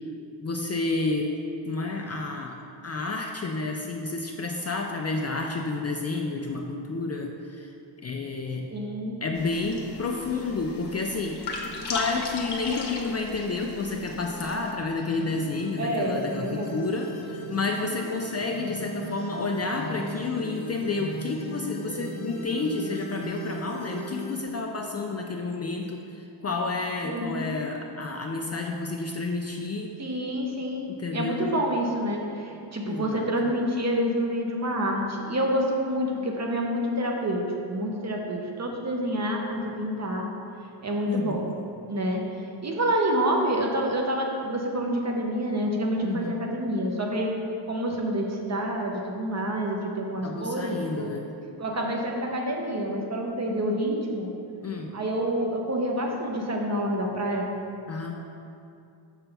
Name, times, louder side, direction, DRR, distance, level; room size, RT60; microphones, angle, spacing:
voice 1, 0.4-1.3 1.7-2.6 2.8-7.7 8.0-8.7 9.2-29.9 30.9-31.5 32.8-33.3 41.1-41.5 46.0-46.4 50.2-51.3 54.6-54.9 57.9-58.2, left 3 dB, 35° left, 1 dB, 0.4 m, -30 dB
voice 2, 8.7-9.2 15.8-16.8 27.0-27.5 30.0-40.3 40.8-41.5 41.9-42.2 42.6-47.4 47.7-51.1 51.6-54.3 54.9-57.5, equal, 35° right, 0 dB, 0.8 m, -28 dB
sound 1, 9.3-14.7, left 3 dB, 55° left, 1.0 m, -37 dB
sound 2, 14.8-24.4, equal, 85° left, 0.9 m, -37 dB
6.9 x 5.9 x 3.4 m, 2.6 s
wide cardioid pair, 130°, 47 cm